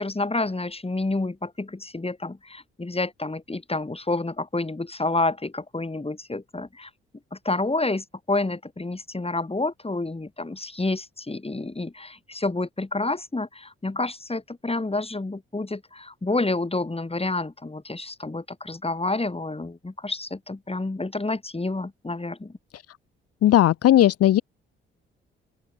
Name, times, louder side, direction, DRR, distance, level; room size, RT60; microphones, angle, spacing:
voice 1, 0.0-6.9 7.3-22.5, left 2 dB, 20° left, 4.0 m, -29 dB
voice 2, 23.4-24.4, left 12 dB, 55° left, 0.7 m, -17 dB
open air
hypercardioid pair, 40°, 29 cm